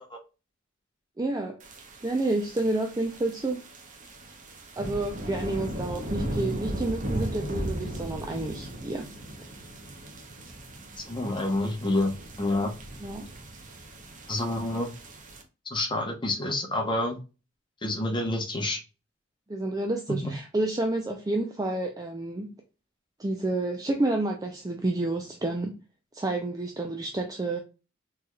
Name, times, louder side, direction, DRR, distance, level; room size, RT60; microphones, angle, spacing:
voice 1, 1.2-1.6 2.0-3.6 4.8-9.0 13.0-13.3 19.5-22.5 23.2-25.8 26.1-27.6, right 2 dB, 20° right, 3 dB, 0.5 m, -29 dB
sound 1, 1.6-15.4, right 1 dB, 40° right, 0.8 m, -37 dB
voice 2, 11.1-12.1 12.4-12.7 14.3-14.9 15.7-17.2 17.8-18.8 20.2-20.3, left 2 dB, 25° left, 3 dB, 0.9 m, -28 dB
4.1 x 3.2 x 2.3 m, 0.31 s
head